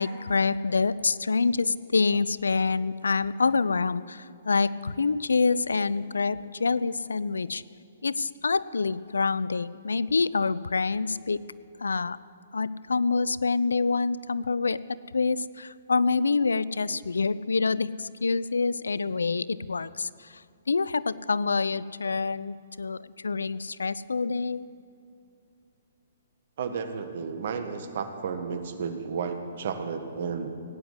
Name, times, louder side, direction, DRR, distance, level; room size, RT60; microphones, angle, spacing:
voice 1, 0.0-7.6 8.0-11.4 11.8-12.2 12.5-14.8 15.1-20.4 20.7-24.6, left 4 dB, 80° left, 18 dB, 0.4 m, -26 dB
voice 2, 26.6-30.5, right 6 dB, 55° right, 8 dB, 1.6 m, -32 dB
17.0 x 9.7 x 8.1 m, 2.5 s
figure-of-eight pair, 125°, 0 cm